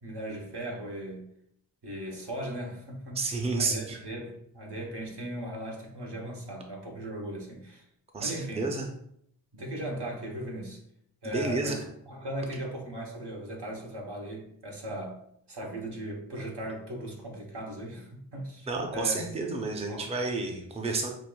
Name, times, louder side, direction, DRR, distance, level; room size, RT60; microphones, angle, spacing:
voice 1, 0.0-1.2 1.8-7.8 8.2-8.7 9.5-10.8 11.2-15.2 15.5-18.7 18.9-19.2 19.9-20.1, right 1 dB, 75° right, -1 dB, 1.0 m, -38 dB
voice 2, 3.2-4.0 8.1-8.9 11.2-11.8 18.7-21.1, right 3 dB, 15° right, 2 dB, 0.5 m, -30 dB
5.7 x 2.5 x 2.2 m, 0.70 s
wide cardioid pair, 70°, 40 cm